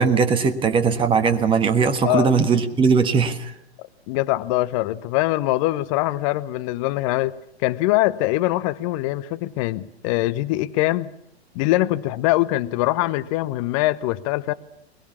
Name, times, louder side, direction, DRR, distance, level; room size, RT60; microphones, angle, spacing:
voice 1, 0.0-3.5, right 5 dB, 15° right, 1.5 m, -19 dB
voice 2, 4.1-7.4 7.6-11.1 11.5-14.5, left 17 dB, 30° left, 0.8 m, -23 dB
22.0 x 21.5 x 7.2 m
figure-of-eight pair, 105°, 33 cm